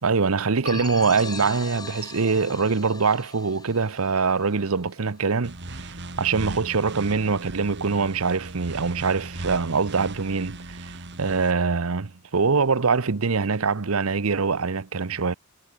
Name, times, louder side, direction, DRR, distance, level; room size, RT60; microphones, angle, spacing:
voice 1, 0.0-15.3, right 4 dB, 75° right, 0.9 m, -24 dB
sound 1, 0.6-5.1, left 3 dB, 20° left, 6.9 m, -39 dB
sound 2, 5.4-11.5, right 2 dB, 55° right, 2.7 m, -37 dB
head